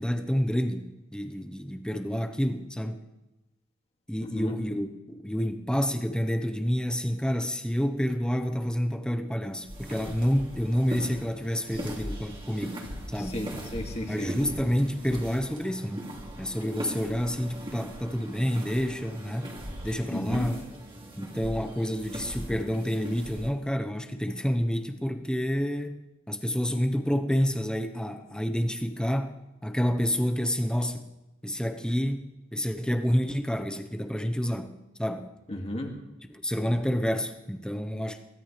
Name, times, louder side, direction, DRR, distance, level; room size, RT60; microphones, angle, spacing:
voice 1, 0.0-3.0 4.1-12.8 13.1-13.4 14.1-16.1 16.4-19.5 19.8-20.6 21.2-26.0 26.3-31.1 31.4-34.7 35.0-35.3 36.3-38.2, equal, 5° left, 5 dB, 1.0 m, -29 dB
sound 1, 9.6-23.5, right 1 dB, 25° right, 2.9 m, -40 dB
voice 2, 13.3-14.3 20.1-20.5 35.5-35.9, left 1 dB, 30° left, 1 dB, 2.3 m, -33 dB
22.5 x 16.5 x 3.4 m, 1.0 s
head